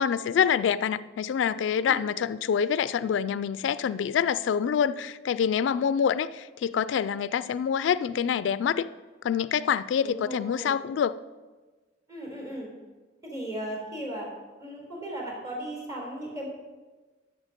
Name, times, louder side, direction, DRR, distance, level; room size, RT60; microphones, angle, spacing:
voice 1, 0.0-8.9 9.2-11.1, left 7 dB, 90° left, 0.3 m, -26 dB
voice 2, 10.0-10.8 12.1-12.7 13.2-14.3 14.6-16.5, right 1 dB, 20° right, 3.9 m, -36 dB
12.5 x 7.1 x 5.1 m
head